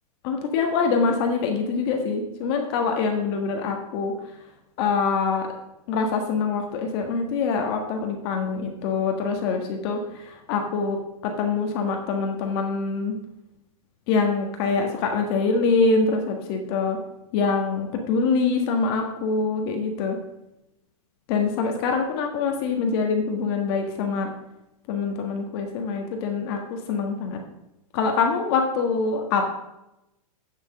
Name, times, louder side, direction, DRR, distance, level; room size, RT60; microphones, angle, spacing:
voice 1, 0.2-4.1 4.8-5.5 5.9-11.0 11.2-13.1 14.1-17.0 17.3-20.2 21.3-24.3 24.9-27.4 27.9-29.5, left 4 dB, 40° left, 3 dB, 1.6 m, -24 dB
8.9 x 6.4 x 6.6 m, 0.89 s
hypercardioid pair, 150°, 19 cm